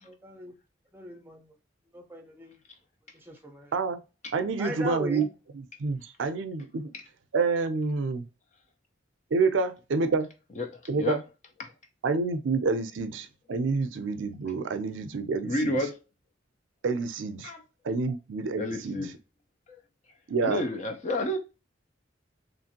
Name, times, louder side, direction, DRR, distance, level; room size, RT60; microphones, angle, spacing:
voice 1, 0.0-0.5 0.9-1.5 1.9-2.6 3.3-3.7 4.6-5.3, equal, 10° right, 0.6 m, -38 dB
voice 2, 4.3-5.3 5.5-6.9 7.3-8.2 9.3-10.3 10.9-11.2 12.0-15.8 16.8-17.5 17.8-19.1 20.3-20.6, right 4 dB, 80° right, 0.5 m, -28 dB
voice 3, 10.6-11.2 11.6-11.7 15.4-15.9 17.4-17.6 18.6-19.1 20.4-21.4, left 1 dB, 40° left, 0.6 m, -30 dB
3.1 x 2.5 x 2.8 m
head